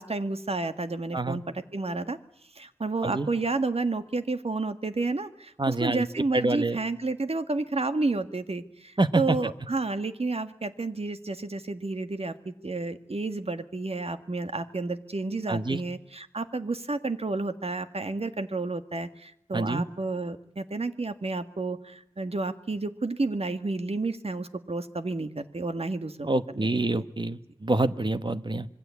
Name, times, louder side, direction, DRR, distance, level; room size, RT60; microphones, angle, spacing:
voice 1, 0.0-2.2 2.5-26.3 26.5-26.7 26.9-27.0, right 3 dB, 60° right, 10 dB, 1.7 m, -31 dB
voice 2, 5.6-6.0 6.3-6.8 9.0-9.4 15.5-15.8 19.5-19.8 26.3-28.7, right 2 dB, 45° right, 12 dB, 1.3 m, -26 dB
26.0 x 22.0 x 8.4 m, 0.71 s
wide cardioid pair, 65°, 11 cm